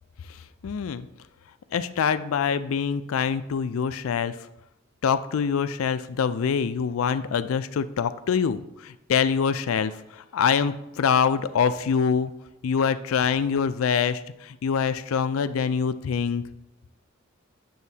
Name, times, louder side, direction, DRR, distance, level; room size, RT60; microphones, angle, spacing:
voice 1, 0.3-1.1 1.7-4.4 5.0-12.3 12.6-16.4, left 6 dB, 85° left, 12 dB, 0.4 m, -25 dB
9.2 x 6.9 x 2.8 m, 0.89 s
head